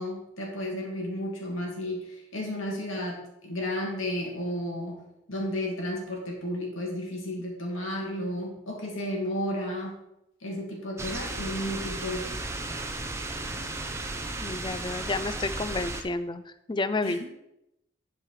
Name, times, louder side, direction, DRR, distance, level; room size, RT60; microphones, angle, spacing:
voice 1, 0.0-5.0 5.3-10.0 10.4-12.4 17.0-17.3, left 1 dB, 75° left, -1 dB, 2.4 m, -33 dB
sound 1, 11.0-16.0, right 2 dB, 15° right, 0.7 m, -34 dB
voice 2, 14.4-17.3, left 3 dB, 20° left, 12 dB, 0.4 m, -30 dB
11.0 x 4.9 x 4.8 m, 0.85 s
head